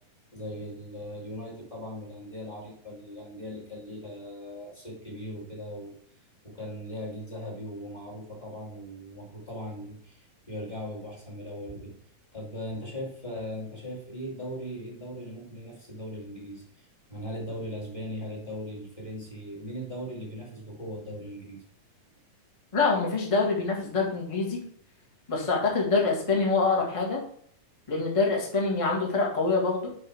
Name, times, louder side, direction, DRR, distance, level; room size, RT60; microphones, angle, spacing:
voice 1, 0.3-5.9 6.4-12.0 12.3-21.6, equal, 15° left, -3 dB, 1.5 m, -39 dB
voice 2, 22.7-24.6 25.3-27.2 27.9-29.9, left 4 dB, 35° left, -1 dB, 0.5 m, -25 dB
9.7 x 3.7 x 4.8 m, 0.63 s
omnidirectional pair, 3.9 m